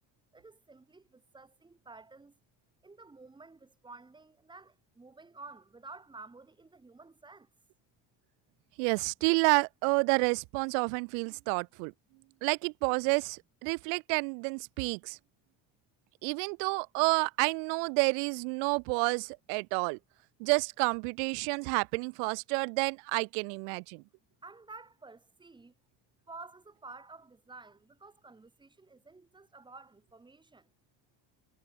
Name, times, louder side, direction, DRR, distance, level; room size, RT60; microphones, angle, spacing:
voice 1, 0.3-2.3 2.8-7.5 24.4-25.7 26.3-30.6, right 3 dB, 10° right, 3.0 m, -51 dB
voice 2, 8.8-11.9 12.4-15.2 16.2-20.0 20.4-24.0, right 40 dB or more, 80° right, 1.6 m, -29 dB
cardioid pair, 175°, 49 cm